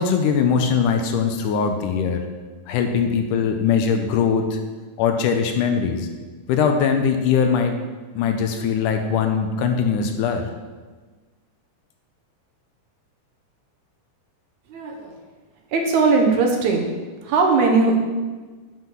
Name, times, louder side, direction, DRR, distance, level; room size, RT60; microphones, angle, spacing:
voice 1, 0.0-2.2 2.7-4.6 5.0-6.1 6.5-7.8 8.2-10.5, left 6 dB, 80° left, 5 dB, 2.3 m, -21 dB
voice 2, 14.7-15.1 15.7-16.9 17.2-18.0, right 4 dB, 70° right, 1 dB, 2.3 m, -19 dB
8.0 x 5.6 x 6.1 m, 1.3 s
omnidirectional pair, 3.7 m